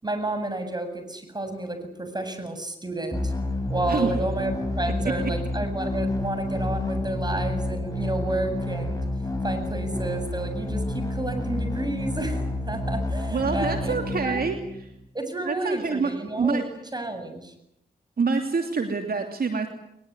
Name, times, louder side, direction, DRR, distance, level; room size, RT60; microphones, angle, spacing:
voice 1, 0.0-3.3 3.7-9.0 9.4-12.4 12.7-13.9 14.2-14.5 15.1-16.6 16.9-17.5, right 2 dB, 25° right, 8 dB, 7.9 m, -31 dB
sound 1, 3.1-15.0, left 1 dB, 20° left, 5.1 m, -29 dB
voice 2, 13.3-14.9 15.4-16.1 16.4-16.6 18.2-19.7, right 4 dB, 60° right, 5 dB, 2.9 m, -26 dB
22.0 x 21.5 x 9.8 m, 0.78 s
cardioid pair, 50°, 18 cm